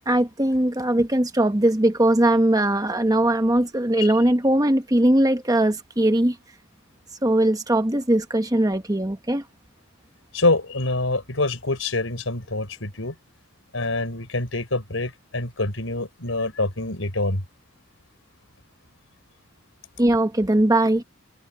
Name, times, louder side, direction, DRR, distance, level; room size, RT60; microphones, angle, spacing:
voice 1, 0.1-6.4 7.2-9.4 20.0-21.0, right 1 dB, 20° right, 1.3 m, -20 dB
voice 2, 10.3-13.1 13.7-17.4, left 2 dB, 75° left, 4.8 m, -25 dB
head